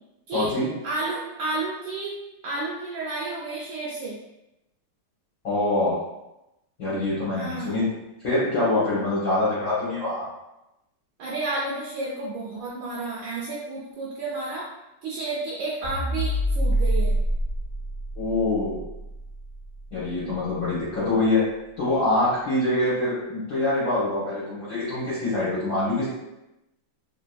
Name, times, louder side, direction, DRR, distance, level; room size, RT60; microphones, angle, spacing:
voice 1, 0.3-0.7 5.4-6.0 6.8-7.8 8.2-10.2 18.2-18.8 19.9-21.4 21.8-26.1, left 2 dB, 50° left, -11 dB, 1.3 m, -24 dB
voice 2, 0.8-2.2 2.4-4.2 7.3-7.8 11.2-14.7 15.0-17.1, right 2 dB, 75° right, -5 dB, 1.2 m, -31 dB
sound 1, 15.8-20.3, right 1 dB, 30° right, 0.4 m, -27 dB
3.3 x 2.8 x 2.2 m, 0.92 s
omnidirectional pair, 2.1 m